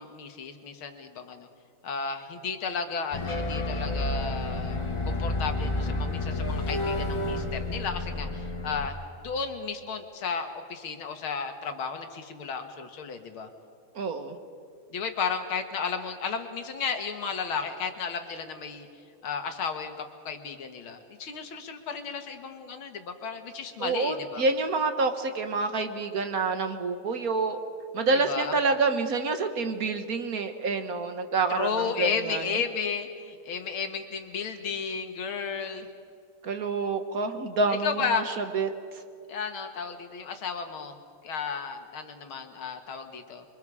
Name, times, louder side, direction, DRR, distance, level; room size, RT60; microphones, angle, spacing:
voice 1, 0.0-1.5 1.8-9.0 9.2-13.5 14.9-18.9 19.2-24.4 28.1-28.5 31.5-35.9 37.8-38.2 39.3-41.0 41.2-43.4, left 5 dB, 75° left, 6 dB, 2.4 m, -33 dB
sound 1, 3.1-8.9, left 2 dB, 25° left, 0.7 m, -30 dB
voice 2, 13.9-14.4 23.8-27.6 27.9-32.4 36.4-39.0, right 3 dB, 50° right, 8 dB, 1.5 m, -28 dB
27.0 x 24.0 x 4.9 m, 2.4 s
omnidirectional pair, 2.3 m